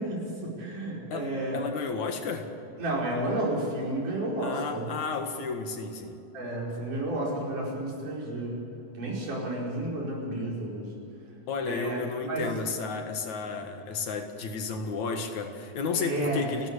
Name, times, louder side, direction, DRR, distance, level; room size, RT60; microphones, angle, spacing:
voice 1, 0.0-1.6 2.8-4.9 6.3-8.6 8.9-10.9 11.6-12.0 12.3-12.5 15.9-16.5, right 1 dB, 85° right, -3 dB, 6.6 m, -31 dB
voice 2, 1.1-2.5 4.4-6.2 11.5-16.7, left 4 dB, 70° left, 5 dB, 3.1 m, -32 dB
29.5 x 13.0 x 8.4 m, 2.8 s
omnidirectional pair, 3.5 m